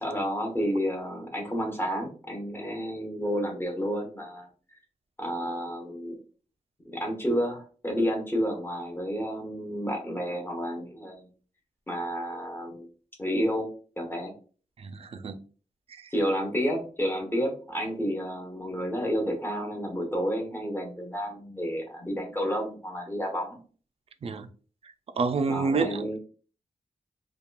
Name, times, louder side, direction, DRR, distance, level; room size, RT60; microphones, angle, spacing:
voice 1, 0.0-4.5 5.2-6.2 6.8-11.3 11.9-12.9 13.2-13.7 14.0-14.3 16.1-23.6 25.5-26.2, equal, 15° left, 0.9 m, -30 dB
voice 2, 14.8-15.4 15.9-16.1 24.2-24.5 25.2-26.2, right 4 dB, 50° right, 0.4 m, -28 dB
2.8 x 2.3 x 2.2 m
wide cardioid pair, 85°, 13 cm